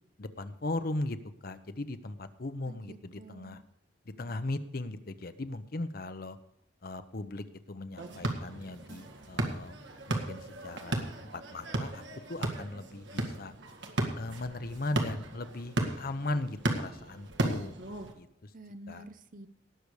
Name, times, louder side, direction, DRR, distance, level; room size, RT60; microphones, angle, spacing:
voice 1, 0.2-1.2 1.4-3.6 4.2-6.4 6.8-9.8 10.1-11.0 11.3-12.0 12.3-13.5 14.2-17.8 18.1-18.3 18.9-19.0, left 2 dB, 50° left, 11 dB, 0.8 m, -38 dB
voice 2, 2.7-3.6 18.5-19.5, right 1 dB, 45° right, 12 dB, 0.7 m, -49 dB
sound 1, 8.0-18.1, right 1 dB, 70° right, 1.8 m, -35 dB
18.5 x 6.8 x 4.9 m, 0.74 s
head